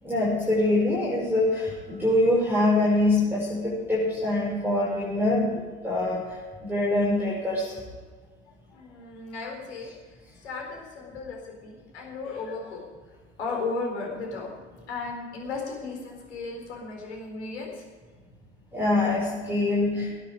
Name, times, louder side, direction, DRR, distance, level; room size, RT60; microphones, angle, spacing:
voice 1, 0.0-7.8 18.7-20.2, left 2 dB, 5° right, -6 dB, 5.5 m, -24 dB
voice 2, 8.7-9.9 10.4-12.8 13.4-14.5 14.9-17.7, left 4 dB, 75° left, 0 dB, 4.3 m, -35 dB
20.0 x 10.0 x 5.2 m, 1.4 s
figure-of-eight pair, 75°, 34 cm